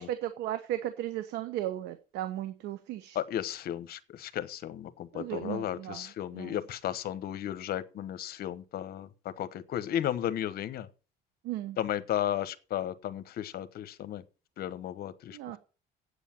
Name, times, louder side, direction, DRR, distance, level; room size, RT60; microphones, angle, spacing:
voice 1, 0.0-3.2 5.1-6.1 6.3-6.6 11.4-11.8 15.3-15.6, right 13 dB, 90° right, 1.0 m, -35 dB
voice 2, 3.1-9.1 9.4-10.9 11.8-14.2 14.6-15.6, left 11 dB, 65° left, 1.1 m, -34 dB
8.2 x 8.2 x 8.9 m
cardioid pair, 110°, 17 cm